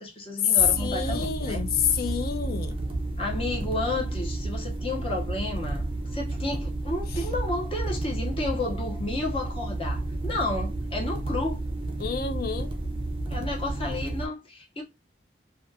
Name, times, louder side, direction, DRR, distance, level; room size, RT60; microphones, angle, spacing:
voice 1, 0.0-1.6 3.2-11.6 13.3-14.8, left 2 dB, 30° left, 0.8 m, -32 dB
sound 1, 0.6-14.3, right 2 dB, 30° right, 0.5 m, -31 dB
voice 2, 0.8-2.9 12.0-12.7, left 7 dB, 55° left, 0.4 m, -29 dB
2.4 x 2.3 x 2.6 m
head